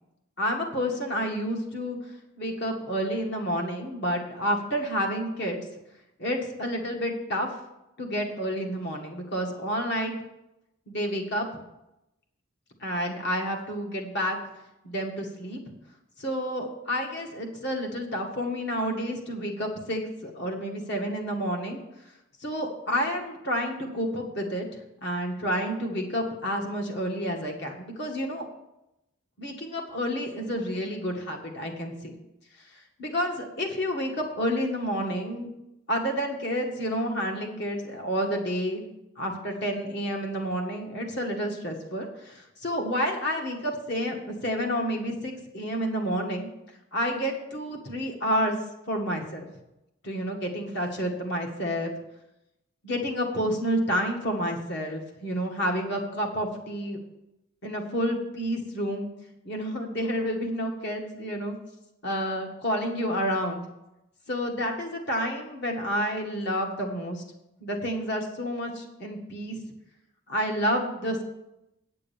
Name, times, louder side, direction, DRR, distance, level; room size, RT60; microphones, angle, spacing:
voice 1, 0.4-2.0 2.4-5.6 6.2-7.5 8.0-10.1 10.9-11.5 12.8-14.4 14.8-15.6 16.2-21.8 22.4-24.7 25.0-28.5 29.4-32.1 33.0-35.5 35.9-38.8 39.2-46.5 46.9-48.6 48.9-49.5 50.0-51.9 52.8-57.0 57.6-59.1 59.4-61.5 62.0-63.6 64.3-67.2 67.6-69.6 70.3-71.2, equal, 55° left, 1 dB, 1.9 m, -29 dB
9.4 x 6.8 x 7.1 m, 0.90 s
head